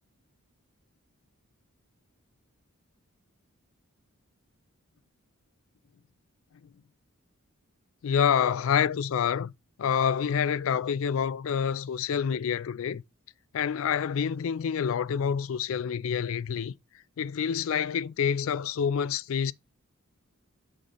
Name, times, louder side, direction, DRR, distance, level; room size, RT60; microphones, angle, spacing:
voice 1, 8.0-9.5 9.8-13.0 13.5-16.7 17.2-19.5, left 7 dB, 65° left, 0.3 m, -27 dB
7.1 x 3.7 x 3.7 m
head